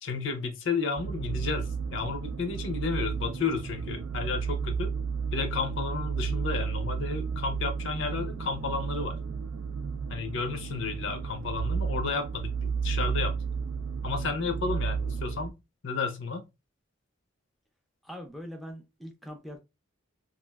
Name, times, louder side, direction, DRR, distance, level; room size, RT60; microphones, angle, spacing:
voice 1, 0.0-4.9 5.3-9.2 10.1-13.4 14.0-15.5 15.8-16.4, left 4 dB, 65° left, 0.6 m, -32 dB
sound 1, 1.0-15.5, right 6 dB, 85° right, 0.4 m, -32 dB
voice 2, 18.0-19.6, equal, ahead, 0.4 m, -42 dB
3.0 x 2.4 x 2.3 m
head